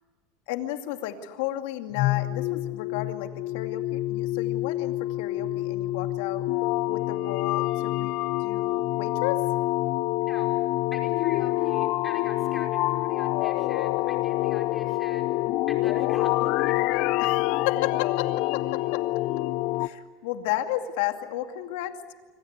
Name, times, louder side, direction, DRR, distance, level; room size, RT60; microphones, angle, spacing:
voice 1, 0.5-6.5 6.9-9.5 17.2-17.3 17.7-19.1 19.8-22.1, left 13 dB, 70° left, 6 dB, 2.4 m, -33 dB
sound 1, 1.9-19.9, left 17 dB, 55° left, 0.7 m, -26 dB
voice 2, 10.2-10.6 10.9-15.3 15.7-17.2, left 2 dB, 10° left, 1 dB, 5.1 m, -44 dB
25.5 x 25.5 x 8.2 m, 1.4 s
supercardioid pair, 155°, 0 cm